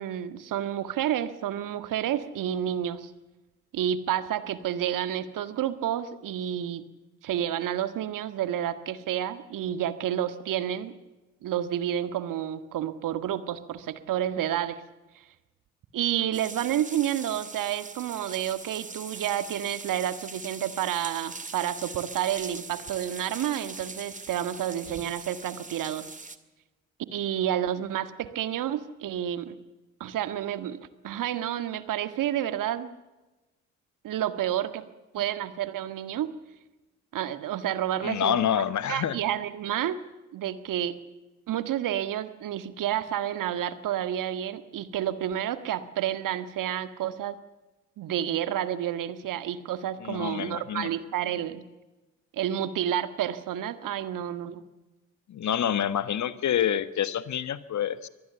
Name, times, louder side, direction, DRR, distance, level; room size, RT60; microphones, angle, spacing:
voice 1, 0.0-3.1 3.7-6.8 7.2-10.9 11.4-14.8 15.9-26.1 27.1-29.6 30.0-30.8 31.0-32.9 34.0-34.8 35.1-36.3 37.1-38.4 38.9-40.0 40.3-41.0 41.5-47.4 48.0-51.6 52.3-54.6, right 11 dB, 60° right, 12 dB, 1.8 m, -30 dB
sound 1, 16.3-26.4, right 3 dB, 20° right, 2.1 m, -42 dB
voice 2, 38.0-39.2 50.0-50.9 55.3-58.1, left 9 dB, 50° left, 14 dB, 1.5 m, -27 dB
24.0 x 19.0 x 7.0 m, 1.1 s
hypercardioid pair, 45°, 36 cm